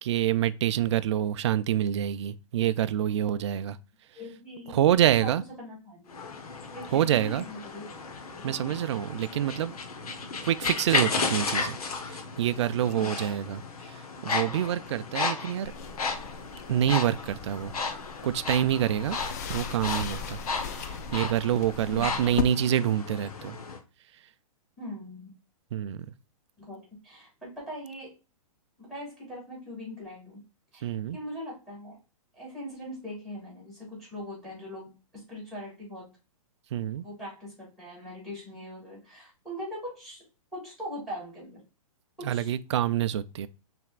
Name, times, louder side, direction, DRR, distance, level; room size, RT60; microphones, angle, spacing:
voice 1, 0.0-3.8 4.7-5.4 6.9-7.5 8.4-9.7 10.4-11.8 12.0-15.7 16.7-17.7 18.2-19.2 19.5-20.4 20.7-23.6 25.7-26.1 30.8-31.2 36.7-37.0 42.2-43.5, right 11 dB, 50° right, 0.4 m, -27 dB
voice 2, 4.1-4.8 5.2-5.3 5.6-6.2 6.7-8.8 12.9-13.2 21.8-22.3 24.8-25.3 26.6-26.8 27.0-28.1 28.8-30.4 30.7-32.0 32.3-34.9 35.1-36.1 37.0-40.2 40.5-41.6 42.2-42.5, left 1 dB, ahead, 2.7 m, -41 dB
sound 1, 6.1-23.8, left 4 dB, 85° left, 1.0 m, -34 dB
sound 2, 15.6-22.4, left 7 dB, 30° left, 0.3 m, -38 dB
5.9 x 3.4 x 2.4 m
hypercardioid pair, 160°, 18 cm